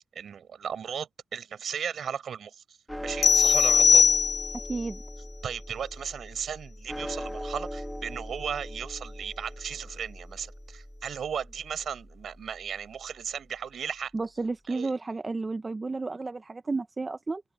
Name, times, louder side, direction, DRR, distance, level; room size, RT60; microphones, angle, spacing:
voice 1, 0.1-2.6 3.0-4.1 5.4-14.1 14.7-14.9, right 7 dB, 80° right, 5.7 m, -36 dB
sound 1, 2.9-13.3, equal, 5° left, 1.6 m, -40 dB
sound 2, 3.2-4.7, left 6 dB, 70° left, 0.6 m, -20 dB
voice 2, 4.7-5.0 14.1-17.4, right 3 dB, 35° right, 0.9 m, -32 dB
cardioid pair, 75°, 0 cm